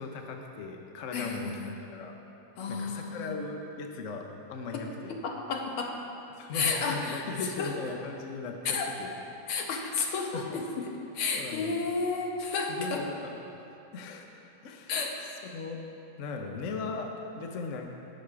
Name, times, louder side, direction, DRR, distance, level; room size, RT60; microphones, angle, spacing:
voice 1, 0.0-1.6 1.9-2.2 2.7-5.1 6.4-9.1 10.3-10.6 11.3-11.7 12.7-13.3 13.9-14.3 14.6-14.9 15.4-15.8 16.2-17.9, left 4 dB, 55° left, 3 dB, 0.9 m, -38 dB
voice 2, 1.1-1.7 2.6-3.3 5.2-5.9 6.5-7.2 7.6-7.7 8.7-8.9 9.5-10.8 11.1-13.0 14.9-15.2, left 4 dB, 80° left, 1 dB, 2.0 m, -31 dB
17.0 x 6.4 x 4.8 m, 2.9 s
omnidirectional pair, 2.3 m